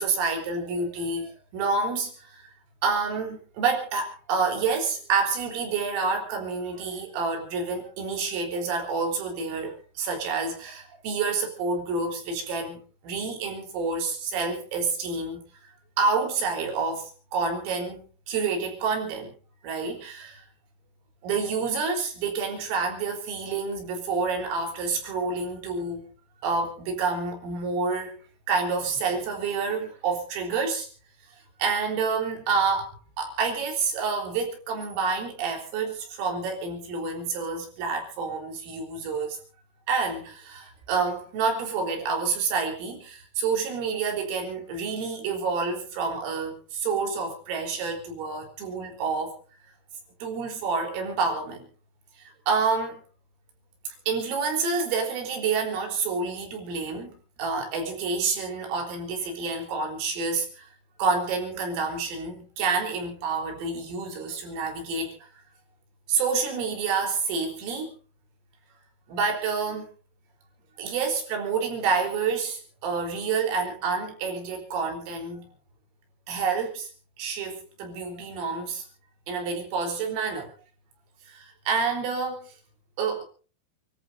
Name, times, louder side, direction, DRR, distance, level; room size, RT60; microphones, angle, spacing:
voice 1, 0.0-2.4 2.8-15.4 16.0-19.3 19.6-20.4 21.2-26.1 26.4-28.1 28.5-30.9 31.6-32.9 33.2-39.4 39.9-49.4 50.2-51.7 52.2-53.0 54.1-60.7 61.0-65.3 66.1-67.9 69.1-69.9 70.8-75.5 76.3-76.9 77.2-78.8 79.3-80.5 81.3-82.5 83.0-83.2, right 4 dB, 85° right, 6.6 m, -28 dB
29.5 x 14.0 x 2.7 m
omnidirectional pair, 5.8 m